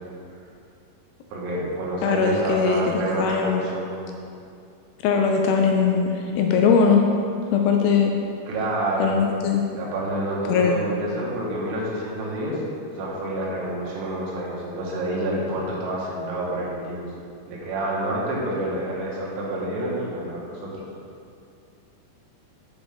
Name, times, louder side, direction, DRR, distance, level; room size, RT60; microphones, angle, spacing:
voice 1, 1.3-3.9 8.5-9.1 9.7-12.6 12.9-17.0 17.5-20.8, right 1 dB, 90° right, -4 dB, 3.7 m, -28 dB
voice 2, 2.0-3.7 5.0-7.0 7.5-8.2 9.0-9.6 10.5-10.8, left 5 dB, 85° left, 2 dB, 2.5 m, -20 dB
8.2 x 7.4 x 3.5 m, 2.5 s
omnidirectional pair, 5.1 m